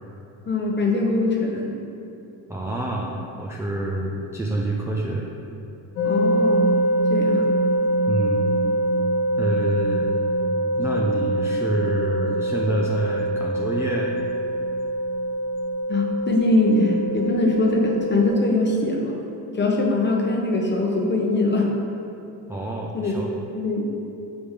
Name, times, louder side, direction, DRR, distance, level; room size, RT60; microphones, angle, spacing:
voice 1, 0.5-1.8 6.0-6.6 7.1-7.4 15.9-19.1 19.5-21.7 22.9-23.1 23.5-23.9, left 2 dB, 25° left, 0 dB, 0.9 m, -22 dB
voice 2, 2.5-5.3 8.1-8.4 9.4-10.1 10.8-14.1 22.5-23.3, right 2 dB, 5° right, -3 dB, 0.5 m, -27 dB
sound 1, 6.0-18.3, right 1 dB, 80° left, 1.2 m, -24 dB
5.3 x 3.2 x 5.6 m, 2.9 s
supercardioid pair, 85°, 45 cm